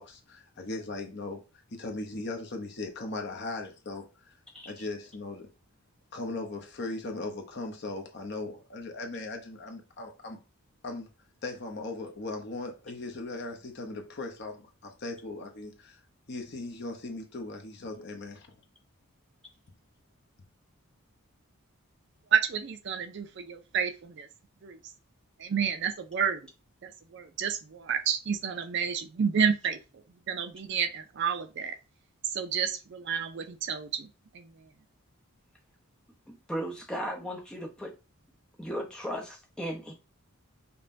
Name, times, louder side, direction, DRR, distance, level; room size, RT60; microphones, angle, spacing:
voice 1, 0.0-1.4 1.7-4.3 4.6-5.5 6.1-10.4 10.8-11.1 11.4-16.0 16.3-18.6, left 2 dB, 50° left, 0.7 m, -38 dB
voice 2, 4.5-4.9 36.3-37.9 38.6-40.0, equal, 5° left, 0.6 m, -36 dB
voice 3, 22.3-24.3 24.6-24.8 25.4-26.4 26.8-29.8 30.3-31.8 32.3-34.1 34.3-34.5, right 7 dB, 50° right, 0.4 m, -30 dB
5.3 x 2.2 x 2.6 m
head